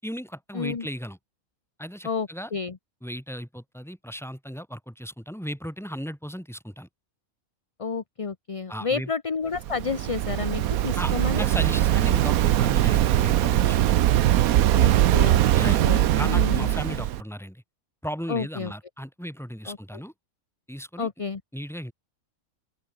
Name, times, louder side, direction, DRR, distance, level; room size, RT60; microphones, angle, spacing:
voice 1, 0.0-1.2 1.8-2.5 3.0-6.9 8.7-9.1 10.9-14.1 15.5-15.8 16.1-17.6 18.0-20.1 20.7-21.1 21.5-21.9, equal, ahead, 6.4 m, -36 dB
voice 2, 0.5-0.9 2.0-2.8 7.8-11.5 14.7-16.7 18.3-18.7 19.7-19.8 21.0-21.4, left 5 dB, 30° left, 0.8 m, -30 dB
Waves surf, 9.5-17.2, right 13 dB, 85° right, 1.2 m, -21 dB
open air
omnidirectional pair, 1.5 m